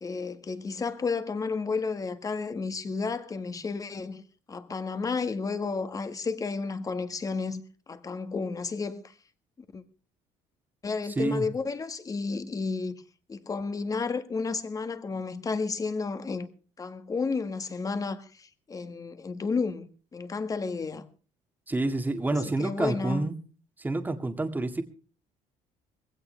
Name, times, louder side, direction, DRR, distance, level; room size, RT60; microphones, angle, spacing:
voice 1, 0.0-4.2 4.5-7.6 7.9-9.1 9.7-9.8 10.8-12.9 13.3-16.5 16.8-21.1 22.3-23.3, left 4 dB, 25° left, 1.8 m, -32 dB
voice 2, 21.7-23.3 23.8-24.8, right 2 dB, 15° right, 2.0 m, -28 dB
21.0 x 16.5 x 3.4 m
cardioid pair, 120°, 14 cm